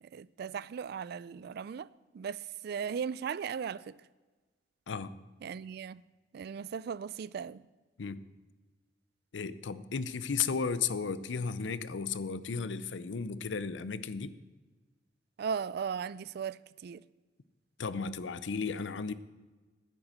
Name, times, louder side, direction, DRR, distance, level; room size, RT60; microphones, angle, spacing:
voice 1, 0.0-4.0 5.4-6.0 6.3-7.6 15.4-17.0, right 7 dB, 60° right, 0.3 m, -37 dB
voice 2, 4.9-5.2 8.0-8.2 9.3-14.3 17.8-19.1, left 5 dB, 85° left, 0.6 m, -34 dB
10.5 x 8.8 x 6.4 m
head